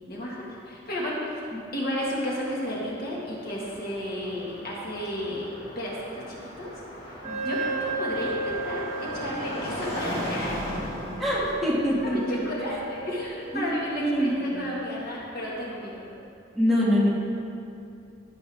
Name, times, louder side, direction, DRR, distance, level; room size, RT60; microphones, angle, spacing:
voice 1, 0.1-1.4 1.7-5.5 5.8-6.7 7.4-10.8 12.0-16.1, left 1 dB, 50° left, -4 dB, 1.8 m, -33 dB
Car passing by, 2.7-14.7, equal, 30° left, 2.2 m, -38 dB
voice 2, 7.2-7.6 11.2-12.4 13.5-14.3 16.5-17.1, equal, ahead, -8 dB, 1.9 m, -24 dB
Wind instrument woodwind instrument, 7.2-14.6, right 2 dB, 35° right, 0.8 m, -35 dB
15.5 x 6.9 x 3.5 m, 2.6 s
head